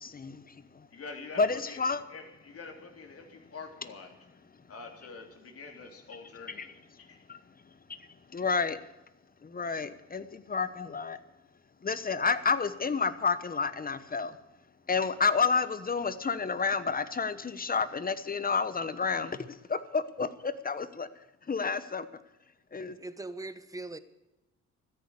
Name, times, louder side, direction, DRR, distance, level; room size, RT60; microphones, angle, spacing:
voice 1, 0.0-0.9 1.4-2.0 4.5-4.7 6.6-6.7 6.9-9.0 9.4-22.1 22.7-23.0, left 5 dB, 30° left, 14 dB, 1.0 m, -31 dB
voice 2, 0.9-4.1 4.7-7.2, left 4 dB, 50° left, 3 dB, 3.5 m, -46 dB
voice 3, 23.0-24.0, right 2 dB, 10° right, 12 dB, 1.2 m, -40 dB
14.0 x 10.5 x 8.2 m, 1.0 s
cardioid pair, 90°, 30 cm